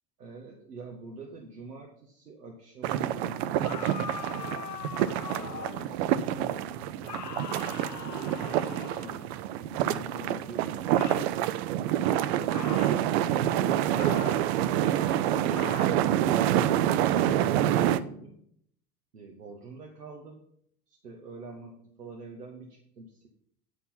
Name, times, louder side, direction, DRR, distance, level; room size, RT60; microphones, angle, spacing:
voice 1, 0.2-4.5 5.3-7.2 8.1-11.2 16.6-18.4 19.1-20.4 20.9-23.3, right 3 dB, 80° right, 1 dB, 1.1 m, -46 dB
sound 1, 2.8-18.0, right 11 dB, 45° right, 0.5 m, -27 dB
sound 2, 3.6-5.9 7.0-9.3 10.9-11.3 12.5-13.0 14.0-14.5 15.5-16.0, left 7 dB, 80° left, 0.7 m, -41 dB
9.8 x 4.2 x 5.7 m, 0.68 s
figure-of-eight pair, 75°, 47 cm